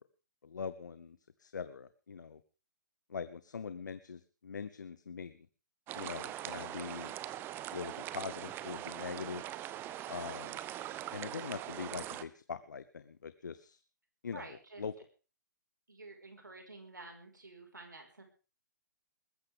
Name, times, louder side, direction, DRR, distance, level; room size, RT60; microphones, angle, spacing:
voice 1, 0.4-2.4 3.1-5.5 5.9-7.1 7.7-9.4 10.1-10.6 11.1-13.8 14.2-14.5 14.8-14.9, left 6 dB, 70° left, 13 dB, 0.9 m, -42 dB
sound 1, 5.9-12.2, right 13 dB, 20° right, 0.8 m, -42 dB
voice 2, 14.3-14.8 15.9-18.2, right 3 dB, 85° right, 4 dB, 5.0 m, -51 dB
21.5 x 13.5 x 3.6 m, 0.35 s
figure-of-eight pair, 125°, 10 cm